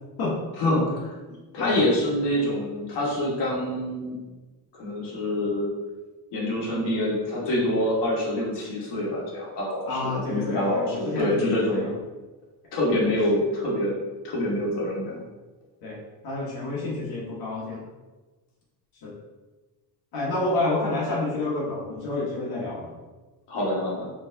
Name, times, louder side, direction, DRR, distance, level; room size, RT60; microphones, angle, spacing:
voice 1, 1.5-4.2 4.7-5.7 6.3-11.9 12.7-13.9 14.2-15.3 23.5-24.1, left 1 dB, 80° left, -4 dB, 1.3 m, -26 dB
voice 2, 9.9-11.9 15.8-16.0 16.2-17.8 19.0-19.1 20.1-22.9, left 2 dB, 60° left, -6 dB, 1.2 m, -29 dB
4.3 x 3.2 x 2.6 m, 1.2 s
cardioid pair, 160°, 41 cm